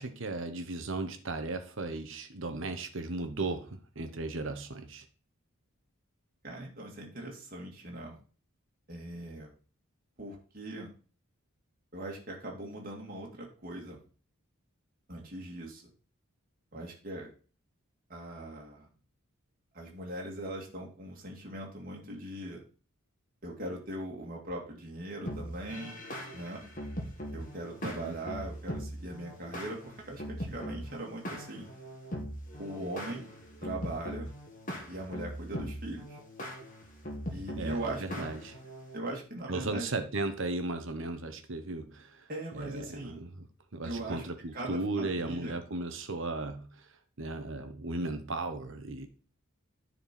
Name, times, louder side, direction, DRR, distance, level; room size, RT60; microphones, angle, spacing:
voice 1, 0.0-5.0 27.8-28.1 37.6-38.5 39.5-42.3 42.5-43.5 43.7-46.8 47.2-49.1, right 2 dB, 60° right, 8 dB, 1.1 m, -36 dB
voice 2, 6.4-8.2 8.9-9.5 10.2-10.9 11.9-14.0 15.1-15.9 16.7-17.3 18.1-18.9 19.7-22.6 23.4-26.0 26.3-26.6 27.3-31.7 32.6-33.3 33.6-34.3 34.9-36.2 37.3-38.4 38.9-39.9 42.3-43.2 43.8-44.2 44.5-45.6, right 1 dB, 40° right, -1 dB, 2.0 m, -40 dB
sound 1, 25.3-39.0, equal, 40° left, 1.8 m, -41 dB
10.0 x 4.5 x 4.4 m, 0.38 s
head